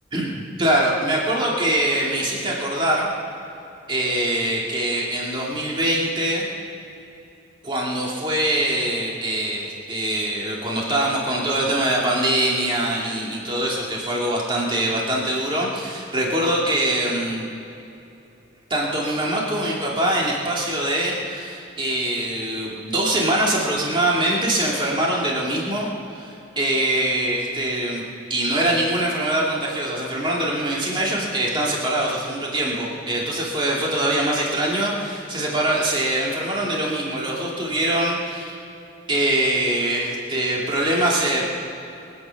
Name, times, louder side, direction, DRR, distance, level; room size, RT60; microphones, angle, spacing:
voice 1, 0.1-3.1 3.9-6.5 7.6-17.5 18.7-25.9 26.1-28.0 28.3-38.6 39.1-41.6, right 1 dB, 25° right, -3 dB, 2.6 m, -23 dB
24.0 x 9.5 x 5.9 m, 2.9 s
head